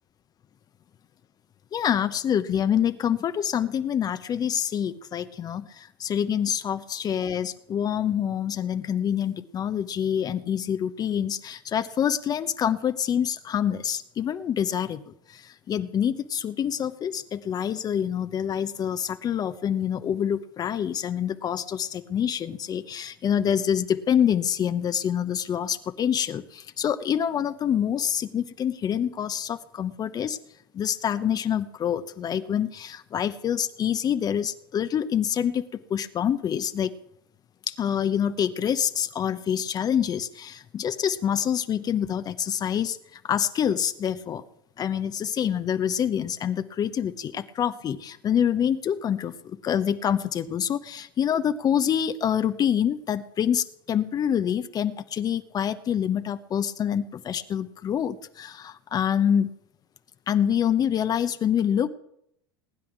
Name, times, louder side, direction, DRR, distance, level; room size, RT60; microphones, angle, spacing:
voice 1, 1.7-30.4 30.7-35.6 35.9-36.9 37.7-44.4 44.8-59.5 60.3-61.9, left 9 dB, 35° left, 12 dB, 1.0 m, -26 dB
19.5 x 10.5 x 6.1 m, 0.74 s
figure-of-eight pair, 80°, 12 cm